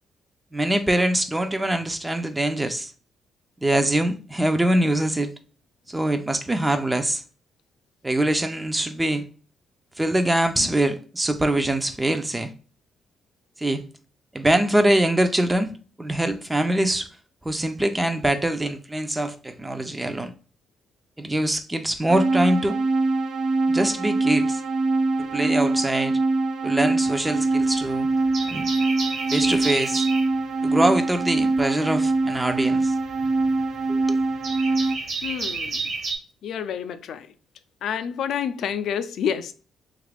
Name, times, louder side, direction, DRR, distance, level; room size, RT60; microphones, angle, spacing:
voice 1, 0.5-2.9 3.6-5.3 5.9-7.2 8.0-9.3 10.0-12.5 13.6-13.8 14.3-17.1 17.4-20.3 21.2-22.8 23.7-24.6 25.2-26.2 26.6-28.1 28.5-28.7 29.3-30.1 30.6-32.9 33.9-34.2, right 1 dB, 15° right, 0.3 m, -23 dB
sound 1, 22.1-35.0, right 3 dB, 85° right, 0.5 m, -23 dB
sound 2, 27.1-27.8 28.2-30.3 31.9-36.1, right 3 dB, 60° right, 1.1 m, -31 dB
voice 2, 35.2-35.9 36.4-37.3 37.8-39.5, left 8 dB, 70° left, 0.3 m, -29 dB
2.9 x 2.4 x 3.3 m
cardioid pair, 90°, 0 cm